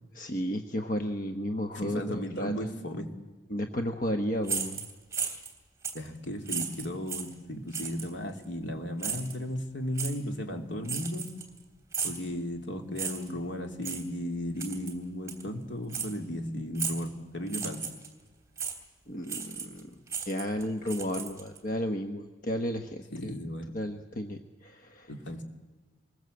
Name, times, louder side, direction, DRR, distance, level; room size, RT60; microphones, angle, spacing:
voice 1, 0.1-2.7 3.5-4.9 5.1-5.4 19.1-19.9 20.3-23.3 23.7-25.1, left 1 dB, 45° left, 5 dB, 1.1 m, -33 dB
voice 2, 1.7-3.1 5.9-11.3 12.0-17.8 23.1-23.7 25.1-25.4, equal, 70° left, 4 dB, 2.7 m, -35 dB
sound 1, 4.4-5.5 5.8-6.1 6.5-7.3 7.7-8.1 9.0-9.3 10.0-10.1 10.9-11.6 11.9-12.2 13.0-13.3 13.8-14.0 14.6-14.9 15.3-15.4 15.9-16.1 16.8-17.1 17.5-18.1 18.6-18.8 19.3-19.8 20.1-21.6, right 6 dB, 15° right, 2.6 m, -35 dB
24.5 x 21.0 x 7.9 m, 1.3 s
head